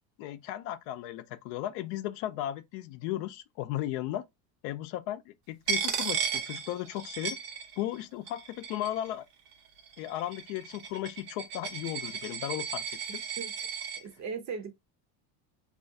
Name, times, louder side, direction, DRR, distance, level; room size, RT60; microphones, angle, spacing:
voice 1, 0.2-4.2 4.6-7.4 7.8-9.2 10.0-12.8 13.1-13.2, left 13 dB, 70° left, 0.6 m, -35 dB
Coin (dropping), 5.7-8.0 8.3-9.1 9.8-14.0, right 7 dB, 80° right, 0.9 m, -35 dB
voice 2, 14.0-14.8, right 5 dB, 35° right, 0.6 m, -38 dB
2.4 x 2.3 x 2.6 m
supercardioid pair, 95°, 49 cm